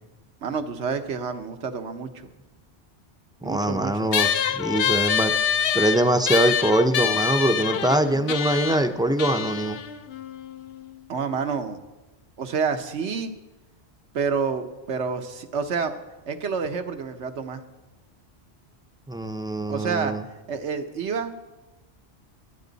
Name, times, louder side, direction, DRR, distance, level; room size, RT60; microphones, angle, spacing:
voice 1, 0.4-2.3 3.4-4.1 11.1-11.8 12.4-13.3 14.1-16.0 16.3-17.6 19.7-20.1 20.5-21.3, right 5 dB, 85° right, 8 dB, 1.3 m, -28 dB
voice 2, 3.4-5.3 5.7-9.8 19.1-20.2, right 1 dB, 5° right, 8 dB, 0.5 m, -23 dB
sound 1, 4.1-10.9, left 8 dB, 65° left, 0.8 m, -26 dB
22.0 x 10.0 x 4.0 m, 1.1 s
omnidirectional pair, 1.1 m